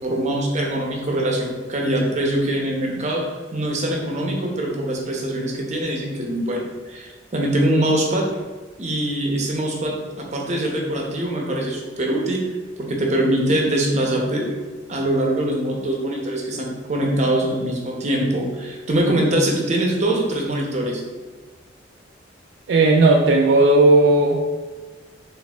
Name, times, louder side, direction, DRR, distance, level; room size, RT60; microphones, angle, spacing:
voice 1, 0.0-3.2 3.5-8.3 8.8-12.4 12.8-14.5 14.9-21.0, right 1 dB, 40° right, -1 dB, 0.7 m, -23 dB
voice 2, 22.7-24.4, right 2 dB, 65° right, 0 dB, 0.3 m, -15 dB
4.2 x 3.3 x 2.3 m, 1.3 s
head